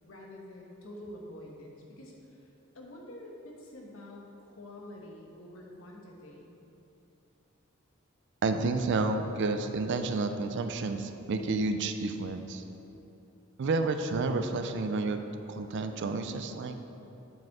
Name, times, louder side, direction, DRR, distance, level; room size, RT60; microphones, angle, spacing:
voice 1, 0.0-2.5 2.7-6.5, left 1 dB, 75° left, -1 dB, 1.0 m, -47 dB
voice 2, 8.4-12.6 13.6-15.2 15.5-16.8, right 3 dB, 60° right, 8 dB, 0.4 m, -30 dB
7.6 x 5.2 x 3.6 m, 2.9 s
head